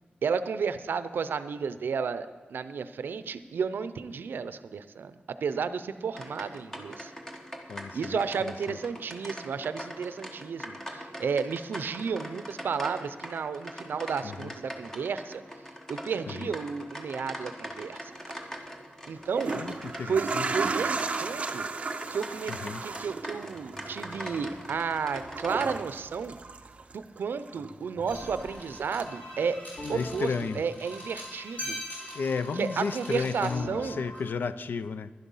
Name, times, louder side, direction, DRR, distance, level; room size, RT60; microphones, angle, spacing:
voice 1, 0.2-7.1 7.9-15.4 15.9-18.1 19.1-19.6 20.1-21.7 22.1-26.4 26.9-29.6 29.9-31.8 32.6-34.0, right 6 dB, 85° right, 12 dB, 0.5 m, -32 dB
sound 1, 6.1-25.8, equal, 15° left, 1.1 m, -42 dB
voice 2, 7.7-8.8 14.2-14.5 16.3-16.5 19.5-20.5 22.5-22.8 29.9-30.6 32.1-35.1, left 5 dB, 70° left, 14 dB, 0.4 m, -33 dB
sound 2, 18.1-18.3 19.2-27.2 27.5-28.5 29.0-29.1, right 4 dB, 35° right, 0.5 m, -35 dB
sound 3, 28.1-34.2, left 1 dB, 50° left, 4.0 m, -41 dB
11.5 x 11.0 x 5.5 m, 1.4 s
wide cardioid pair, 180°, 3 cm